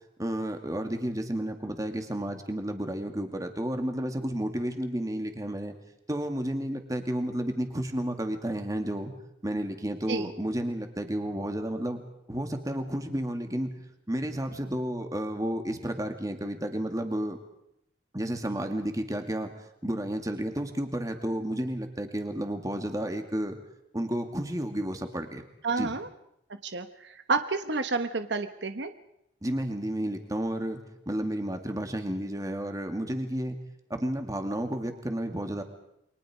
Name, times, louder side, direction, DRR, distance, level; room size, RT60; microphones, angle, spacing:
voice 1, 0.2-5.8 6.1-9.1 9.4-12.0 12.3-13.7 14.1-17.4 18.1-19.5 19.8-23.6 23.9-25.4 25.8-25.9 29.4-33.6 33.9-35.6, right 1 dB, 20° right, 5 dB, 2.3 m, -31 dB
voice 2, 25.6-26.1 26.6-28.9, right 4 dB, 70° right, 9 dB, 1.1 m, -30 dB
29.0 x 24.0 x 5.0 m, 0.80 s
head